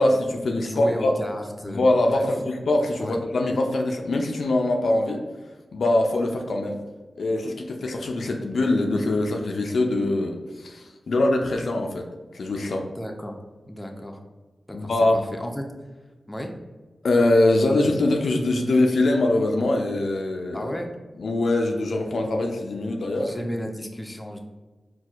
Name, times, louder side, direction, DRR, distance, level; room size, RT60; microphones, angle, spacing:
voice 1, 0.0-1.1 1.6-5.2 5.7-6.8 7.2-12.1 12.3-12.9 14.7-15.2 17.0-20.7 21.2-23.4, left 2 dB, 80° left, 2 dB, 0.4 m, -23 dB
voice 2, 0.6-2.3 3.0-3.1 12.9-13.4 13.7-14.2 14.7-15.6 16.3-16.5 20.5-20.9 23.2-24.4, equal, 20° left, 3 dB, 0.5 m, -33 dB
4.2 x 2.2 x 2.4 m, 1.3 s
cardioid pair, 50°, 0 cm